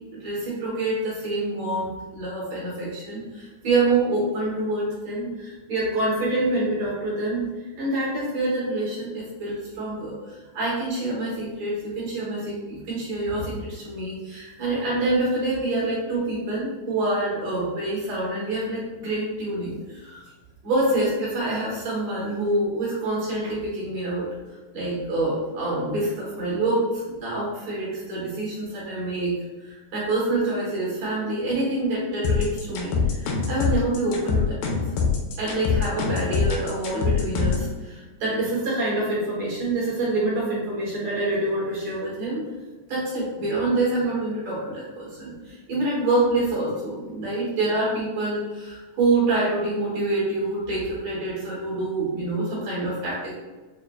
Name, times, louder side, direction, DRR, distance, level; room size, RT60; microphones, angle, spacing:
voice 1, 0.2-20.2 20.6-24.3 24.7-34.8 35.4-42.4 42.9-53.3, right 2 dB, 60° right, -7 dB, 1.9 m, -26 dB
sound 1, 32.2-37.7, left 5 dB, 80° left, 2.1 m, -23 dB
5.9 x 2.4 x 2.2 m, 1.2 s
omnidirectional pair, 4.3 m